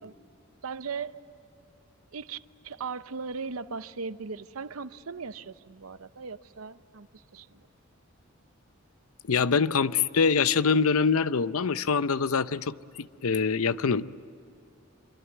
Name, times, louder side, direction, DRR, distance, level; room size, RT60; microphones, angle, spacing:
voice 1, 0.6-1.2 2.1-7.6, right 5 dB, 90° right, 13 dB, 0.8 m, -38 dB
voice 2, 9.3-14.1, left 5 dB, 85° left, 15 dB, 0.6 m, -24 dB
25.5 x 23.5 x 9.4 m, 2.6 s
head